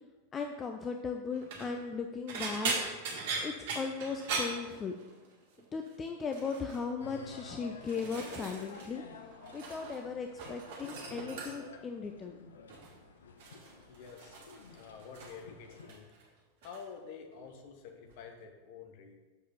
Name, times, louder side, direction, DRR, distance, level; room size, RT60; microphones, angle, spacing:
voice 1, 0.3-2.7 3.4-5.0 5.7-9.0 9.5-12.3, left 5 dB, 20° left, 4 dB, 0.5 m, -37 dB
sound 1, 1.3-1.7 2.3-5.3 5.6-5.9 6.3-6.8 7.5-8.9 9.2-10.0 10.3-11.8 12.7-13.0 13.4-15.5 15.7-16.3 16.6-16.8 18.1-18.2, right 4 dB, 50° right, 1.8 m, -39 dB
sound 2, 7.0-15.9, left 4 dB, 65° left, 0.7 m, -52 dB
voice 2, 13.9-14.4 14.7-16.1 16.6-19.2, left 6 dB, 45° left, 4 dB, 1.2 m, -49 dB
6.8 x 5.0 x 5.5 m, 1.2 s
figure-of-eight pair, 90°, 0 cm